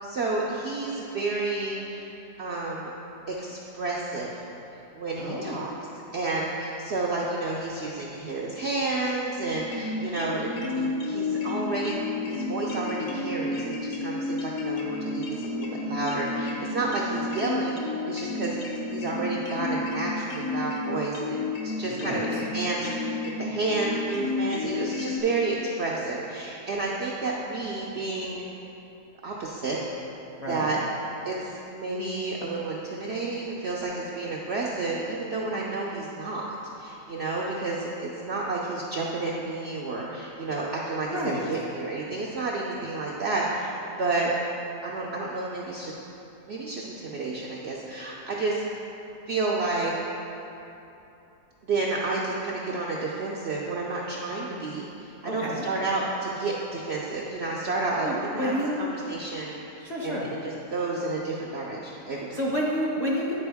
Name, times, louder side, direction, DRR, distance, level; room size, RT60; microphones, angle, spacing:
voice 1, 0.0-2.9 3.3-4.3 4.9-5.7 6.1-12.0 12.2-21.4 21.6-28.5 29.2-29.8 30.5-30.8 31.2-43.7 44.0-44.3 44.8-45.9 46.5-48.7 49.3-49.9 51.6-62.4, right 3 dB, 65° right, -4 dB, 0.6 m, -30 dB
voice 2, 5.2-5.6 21.8-22.2 30.4-30.7 41.1-41.4 55.2-55.7 58.0-58.8 59.8-60.3 62.3-63.3, equal, 35° left, -6 dB, 0.7 m, -29 dB
sound 1, 9.5-25.2, left 3 dB, 60° left, 1.0 m, -31 dB
9.5 x 4.5 x 3.4 m, 3.0 s
omnidirectional pair, 1.7 m